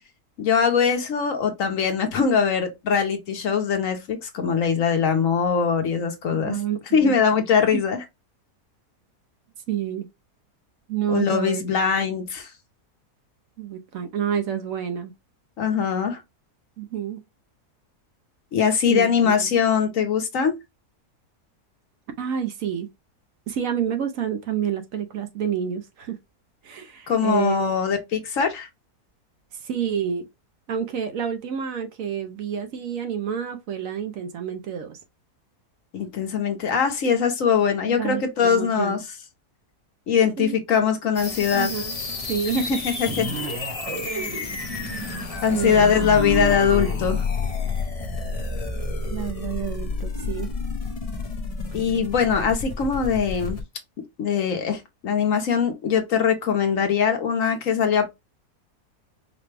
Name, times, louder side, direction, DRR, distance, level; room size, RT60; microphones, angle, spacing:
voice 1, 0.4-6.6 6.9-8.0 11.1-12.5 15.6-16.2 18.5-20.6 27.1-28.7 35.9-39.0 40.1-41.7 42.5-43.3 45.4-47.2 51.7-53.6 54.2-58.1, left 6 dB, 60° left, 1.1 m, -22 dB
voice 2, 6.3-7.2 9.7-10.1 10.9-11.6 12.0-12.1 13.6-15.1 16.8-17.2 18.9-19.5 22.2-22.9 23.5-26.2 26.6-27.8 29.5-30.2 30.7-35.0 38.0-39.0 40.4-40.6 41.5-42.0 42.3-42.8 44.0-44.4 45.5-46.0 49.1-50.5, right 8 dB, 70° right, 0.9 m, -29 dB
sound 1, 41.2-53.6, left 4 dB, 40° left, 0.5 m, -30 dB
sound 2, 43.1-47.0, right 2 dB, 25° right, 1.0 m, -33 dB
5.0 x 2.2 x 3.3 m
omnidirectional pair, 1.7 m